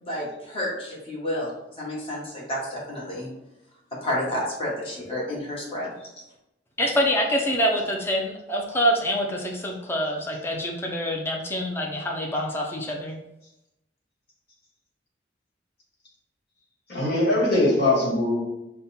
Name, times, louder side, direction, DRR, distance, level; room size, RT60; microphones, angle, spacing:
voice 1, 0.0-3.3 3.9-6.1, left 1 dB, 30° left, -5 dB, 1.4 m, -30 dB
voice 2, 6.8-13.2, equal, 15° left, -1 dB, 0.6 m, -26 dB
voice 3, 16.9-18.5, left 2 dB, 55° left, -4 dB, 1.7 m, -21 dB
5.3 x 2.2 x 4.2 m, 0.88 s
head